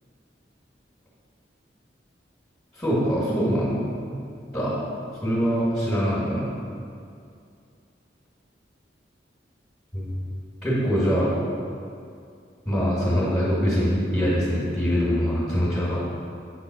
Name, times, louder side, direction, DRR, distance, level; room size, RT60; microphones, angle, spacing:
voice 1, 2.8-4.1 4.5-4.8 5.2-6.5 9.9-10.2 10.6-11.3 12.7-16.0, equal, 5° left, -10 dB, 2.3 m, -23 dB
8.9 x 4.4 x 6.3 m, 2.4 s
head